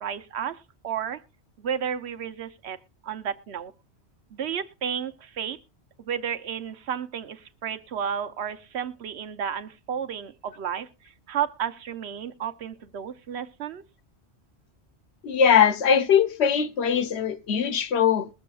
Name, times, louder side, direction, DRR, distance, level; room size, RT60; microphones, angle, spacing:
voice 1, 0.0-1.2 1.6-2.8 3.0-3.7 4.3-5.6 6.0-13.8, right 8 dB, 75° right, 1.0 m, -32 dB
voice 2, 15.2-18.3, left 7 dB, 75° left, 1.0 m, -21 dB
21.5 x 7.5 x 2.3 m
omnidirectional pair, 1.1 m